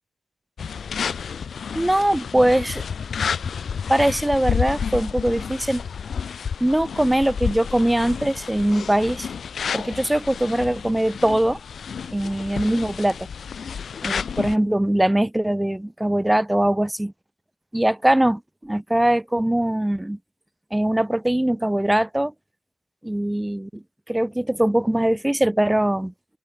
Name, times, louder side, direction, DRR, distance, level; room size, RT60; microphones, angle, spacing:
sound 1, 0.6-14.6, left 6 dB, 65° left, 6.3 m, -30 dB
voice 1, 1.7-2.8 3.9-5.8 6.6-9.3 9.7-11.6 12.1-13.2 14.0-17.1 17.7-20.2 20.7-22.3 23.0-26.1, right 1 dB, 10° right, 1.5 m, -21 dB
cardioid pair, 65°, 0 cm